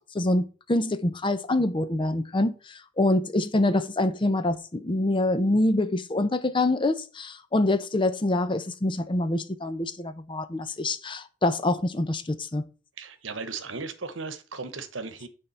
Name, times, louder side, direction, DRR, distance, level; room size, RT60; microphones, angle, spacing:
voice 1, 0.1-12.6, left 2 dB, 25° left, 0.6 m, -25 dB
voice 2, 13.0-15.3, right 4 dB, 80° right, 1.0 m, -36 dB
9.3 x 3.6 x 5.6 m
head